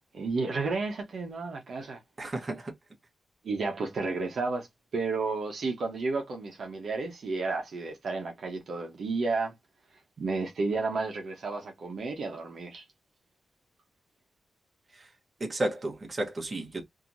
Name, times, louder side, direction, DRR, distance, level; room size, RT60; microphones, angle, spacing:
voice 1, 0.1-2.0 3.4-4.7 4.9-9.5 10.2-12.8, right 3 dB, 65° right, 1.0 m, -32 dB
voice 2, 2.2-2.7 14.9-15.1 15.4-16.8, right 1 dB, 35° right, 1.2 m, -33 dB
2.9 x 2.9 x 2.6 m
wide cardioid pair, 110°, 0 cm